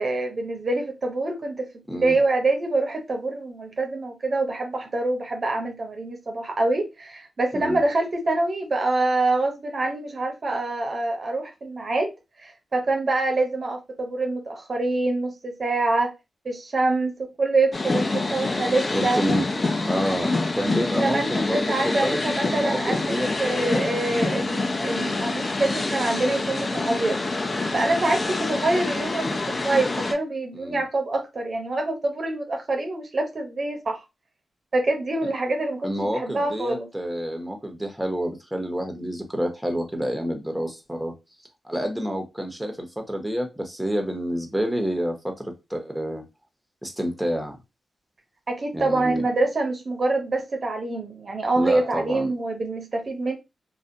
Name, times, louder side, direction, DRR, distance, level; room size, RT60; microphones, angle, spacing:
voice 1, 0.0-12.1 12.4-16.1 16.4-19.2 21.0-27.2 27.7-29.4 29.6-34.0 34.7-35.9 36.1-36.9 48.5-53.3, right 2 dB, 50° right, 0.6 m, -25 dB
voice 2, 1.9-2.2 7.5-7.8 18.9-23.9 30.5-30.8 35.2-35.3 35.8-41.1 41.6-45.3 45.7-46.2 46.8-47.6 48.7-49.2 51.6-52.3, equal, 5° right, 0.9 m, -28 dB
sound 1, 17.7-30.1, left 2 dB, 45° left, 0.5 m, -26 dB
2.5 x 2.1 x 2.6 m
cardioid pair, 50°, 0 cm